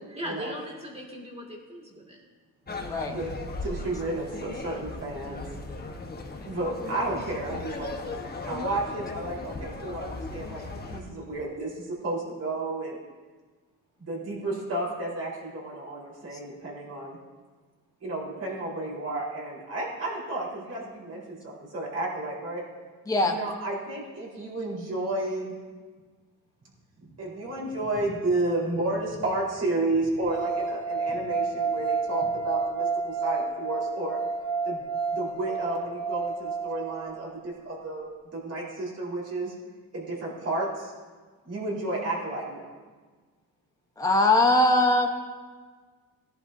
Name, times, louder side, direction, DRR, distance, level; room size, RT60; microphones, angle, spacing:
voice 1, 0.1-2.2 3.9-4.0 5.2-5.3 10.9-11.1 23.2-23.3, equal, 15° right, -1 dB, 2.3 m, -39 dB
sound 1, 2.7-11.0, left 3 dB, 25° left, 1.2 m, -37 dB
voice 2, 3.6-5.4 6.4-8.0 8.4-13.0 14.0-17.2 18.0-22.6 23.3-25.6 27.2-34.2 34.6-34.8 35.1-38.0 38.3-39.5 39.9-40.9 41.4-42.7, right 2 dB, 45° right, -4 dB, 4.2 m, -32 dB
sound 2, 30.2-37.3, right 4 dB, 80° right, 3.3 m, -30 dB
voice 3, 44.0-45.1, left 2 dB, 10° left, 1 dB, 1.0 m, -21 dB
17.5 x 11.0 x 2.7 m, 1.4 s
cardioid pair, 130°, 35 cm